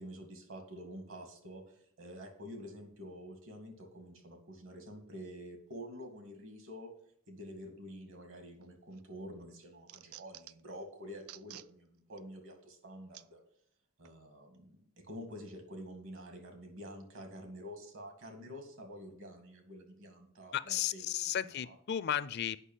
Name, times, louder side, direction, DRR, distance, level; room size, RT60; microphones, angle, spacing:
voice 1, 0.0-6.9 7.3-13.4 14.0-21.1 21.4-21.8, equal, 65° right, 5 dB, 2.1 m, -48 dB
sound 1, 8.6-9.0 9.4-10.7 11.2-11.7 12.2-12.3 13.1-13.3 14.0-14.2, right 14 dB, 80° right, 0.4 m, -52 dB
voice 2, 20.5-22.6, left 10 dB, 50° left, 16 dB, 0.4 m, -34 dB
8.3 x 5.8 x 7.3 m, 0.64 s
head